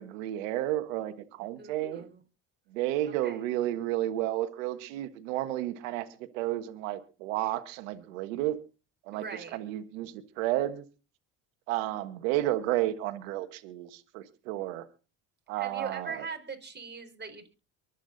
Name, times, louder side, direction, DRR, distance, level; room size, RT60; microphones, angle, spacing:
voice 1, 0.0-2.1 2.7-8.6 9.1-9.2 9.5-10.8 11.7-14.9 15.5-16.3, right 14 dB, 85° right, 10 dB, 1.5 m, -32 dB
voice 2, 1.6-2.2 3.2-3.5 9.1-9.6 15.6-17.5, right 5 dB, 25° right, 5 dB, 4.4 m, -41 dB
23.5 x 8.4 x 3.9 m, 0.33 s
supercardioid pair, 70°, 38 cm